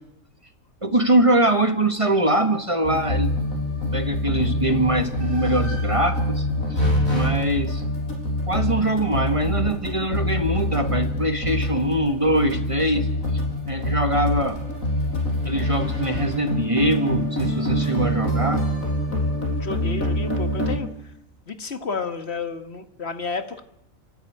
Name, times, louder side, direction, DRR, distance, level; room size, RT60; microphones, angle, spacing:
voice 1, 0.8-3.3 3.9-7.8 8.5-13.1 13.7-14.6 15.4-18.6, right 1 dB, 25° right, 1.5 m, -23 dB
sound 1, 2.8-20.8, left 1 dB, 90° left, 6.0 m, -25 dB
voice 2, 19.6-21.1 21.5-23.6, left 4 dB, 50° left, 1.8 m, -31 dB
28.5 x 14.5 x 9.3 m
omnidirectional pair, 1.4 m